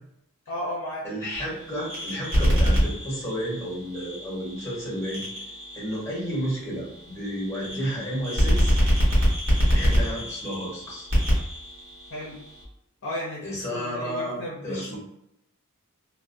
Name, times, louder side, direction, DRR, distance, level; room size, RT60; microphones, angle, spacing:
voice 1, 0.5-1.0 12.1-12.4 13.0-15.0, left 1 dB, 60° left, -4 dB, 0.6 m, -34 dB
voice 2, 1.0-5.2 5.7-8.8 9.6-11.1 13.4-14.4 14.6-15.0, equal, 15° left, -6 dB, 1.0 m, -32 dB
sound 1, 1.4-12.6, equal, 55° right, 1.0 m, -26 dB
2.2 x 2.2 x 2.5 m, 0.80 s
head